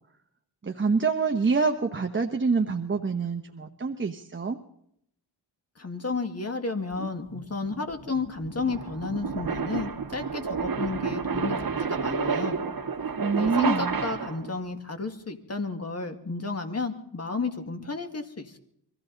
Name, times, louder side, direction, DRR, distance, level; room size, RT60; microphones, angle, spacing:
voice 1, 0.6-4.6 13.2-14.0, right 4 dB, 30° right, 4 dB, 1.1 m, -26 dB
voice 2, 5.8-12.6 13.4-18.6, left 4 dB, 35° left, 6 dB, 2.0 m, -32 dB
sound 1, 7.0-14.6, right 5 dB, 55° right, 1.9 m, -30 dB
24.0 x 15.5 x 4.0 m, 0.72 s
wide cardioid pair, 90°, 41 cm